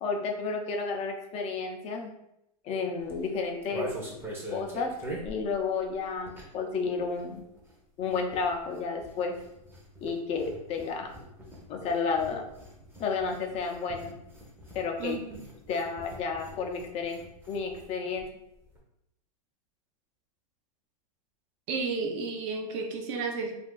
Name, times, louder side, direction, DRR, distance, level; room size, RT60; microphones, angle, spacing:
voice 1, 0.0-2.1 2.6-3.9 4.5-4.9 5.2-7.5 8.0-9.4 10.0-11.1 11.7-12.4 13.0-14.1 14.7-15.2 15.7-18.3, left 5 dB, 35° left, 2 dB, 0.5 m, -31 dB
sound 1, 3.0-6.7 7.0-17.9 18.2-18.3 18.5-18.8, right 1 dB, 10° right, 0.7 m, -44 dB
voice 2, 15.0-15.4 21.7-23.5, right 4 dB, 55° right, 2 dB, 0.6 m, -32 dB
2.5 x 2.3 x 3.7 m, 0.82 s
hypercardioid pair, 125°, 20 cm